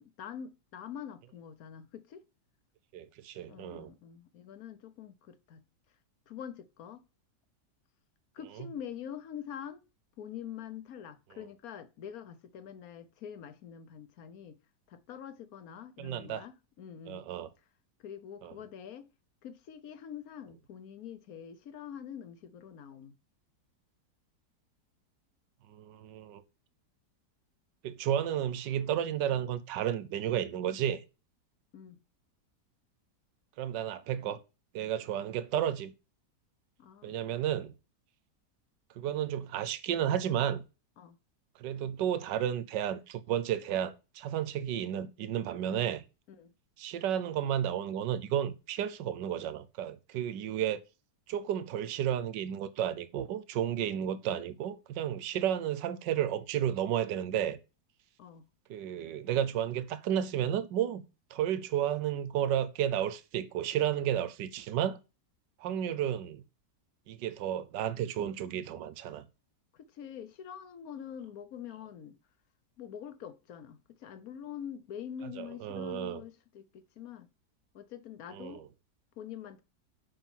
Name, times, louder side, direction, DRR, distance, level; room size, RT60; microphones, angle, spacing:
voice 1, 0.0-2.2 3.5-5.6 6.3-7.0 8.3-9.8 10.2-14.6 14.9-17.2 18.0-19.1 19.4-23.2 31.7-32.0 36.8-37.2 41.0-41.2 46.4-46.5 58.2-58.4 69.7-72.2 72.8-77.3 77.7-78.6 79.2-79.6, left 9 dB, 60° left, 1.3 m, -45 dB
voice 2, 2.9-3.9 8.6-8.7 16.0-16.4 17.1-17.5 18.4-18.5 25.7-26.4 27.8-31.0 33.6-34.4 34.7-35.9 37.0-37.7 39.0-40.6 41.6-46.0 46.8-50.8 51.3-57.6 58.7-61.0 61.3-65.0 65.6-66.4 67.1-69.2 75.4-76.2 78.3-78.6, right 10 dB, 90° right, 1.4 m, -32 dB
7.2 x 5.7 x 7.2 m
omnidirectional pair, 1.8 m